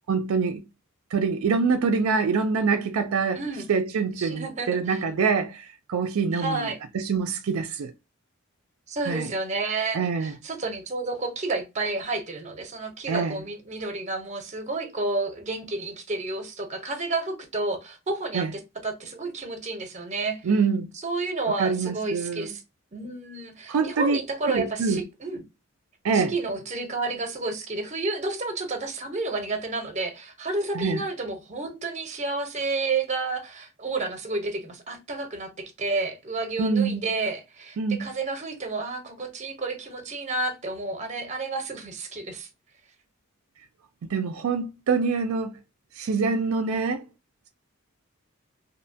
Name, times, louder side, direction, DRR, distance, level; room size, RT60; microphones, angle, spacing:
voice 1, 0.1-0.6 1.1-3.4 3.7-6.7 6.9-7.9 9.0-9.3 9.9-10.3 13.1-13.4 18.3-18.5 20.4-20.9 21.6-22.5 23.7-24.2 24.5-25.0 26.0-26.3 30.7-31.0 36.6-37.0 37.8-38.1 44.1-45.5 46.0-47.0, right 5 dB, 75° right, 0.4 m, -25 dB
voice 2, 3.3-3.7 4.2-5.0 6.3-6.8 8.9-20.4 21.0-22.6 22.9-25.4 26.1-42.5, right 3 dB, 35° right, 0.7 m, -31 dB
2.7 x 2.2 x 2.6 m
head